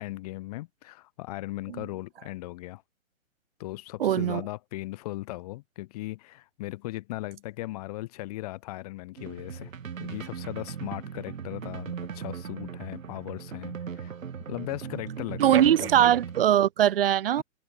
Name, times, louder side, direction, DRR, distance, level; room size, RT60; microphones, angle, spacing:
voice 1, 0.0-2.8 3.6-9.7 10.0-14.1 14.5-16.0, left 18 dB, 30° left, 1.4 m, -38 dB
voice 2, 4.0-4.4 15.4-17.4, right 11 dB, 45° right, 0.5 m, -21 dB
sound 1, 9.2-16.5, right 7 dB, 70° right, 3.5 m, -38 dB
hypercardioid pair, 150°, 41 cm